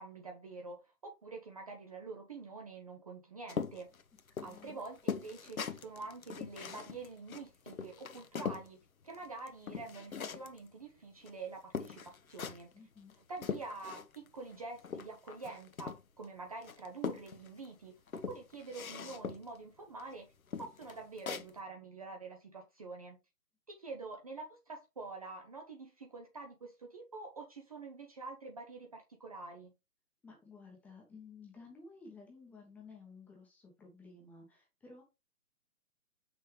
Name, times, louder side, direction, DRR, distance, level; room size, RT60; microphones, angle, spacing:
voice 1, 0.0-3.9 4.4-8.8 9.0-12.7 13.3-20.3 20.6-23.2 23.7-29.7, right 3 dB, 25° right, 0.7 m, -47 dB
sound 1, 3.5-8.7 9.1-10.6 11.3-11.4 11.7-12.7 13.1-14.3 14.5-16.2 16.6-17.7 18.1-19.6 20.0-20.1 20.5-21.5, left 6 dB, 60° left, 1.0 m, -41 dB
voice 2, 4.4-4.8 12.7-13.1 30.2-35.0, left 4 dB, 5° left, 1.0 m, -54 dB
7.6 x 5.9 x 3.2 m
figure-of-eight pair, 135°, 46 cm